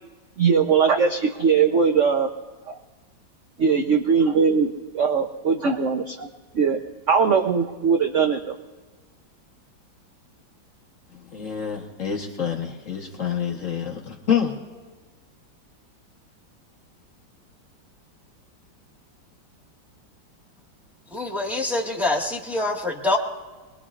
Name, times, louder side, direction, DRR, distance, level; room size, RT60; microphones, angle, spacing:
voice 1, 0.4-2.3 2.7-2.8 3.6-6.3 6.5-6.8 7.1-8.6, right 6 dB, 60° right, 4 dB, 0.8 m, -20 dB
voice 2, 11.1-14.6, left 8 dB, 45° left, 1 dB, 1.4 m, -27 dB
voice 3, 21.1-23.2, left 2 dB, ahead, -4 dB, 1.4 m, -25 dB
27.0 x 21.0 x 2.4 m, 1.3 s
omnidirectional pair, 2.0 m